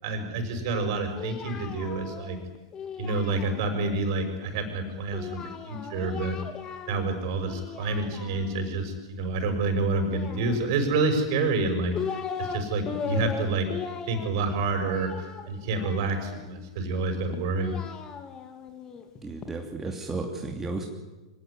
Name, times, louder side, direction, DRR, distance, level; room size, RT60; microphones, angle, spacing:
voice 1, 0.0-2.4 3.0-6.4 6.9-12.0 12.4-13.7 14.1-15.1 15.5-17.8, right 3 dB, 50° right, 6 dB, 6.1 m, -28 dB
Singing, 0.7-4.0 5.1-7.1 7.4-8.7 10.1-11.0 11.6-12.6 12.8-16.5 17.3-19.5, left 7 dB, 25° left, 3.1 m, -38 dB
voice 2, 19.2-20.9, right 3 dB, 15° right, 1 dB, 2.8 m, -33 dB
25.0 x 18.0 x 9.9 m, 1.2 s
figure-of-eight pair, 100°, 3 cm